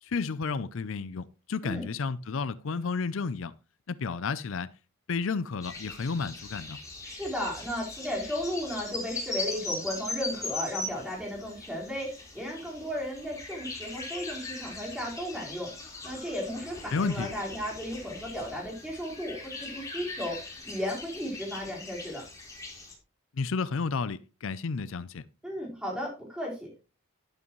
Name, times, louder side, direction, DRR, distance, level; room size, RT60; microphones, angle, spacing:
voice 1, 0.0-3.5 3.9-4.7 5.1-6.8 16.9-17.3 23.3-25.2, left 4 dB, 65° left, 0.5 m, -32 dB
sound 1, 5.6-22.9, left 2 dB, 15° left, 4.2 m, -40 dB
voice 2, 7.0-15.7 16.0-20.4 20.6-22.2 25.4-26.7, equal, 5° right, 4.6 m, -35 dB
12.5 x 11.0 x 3.1 m
head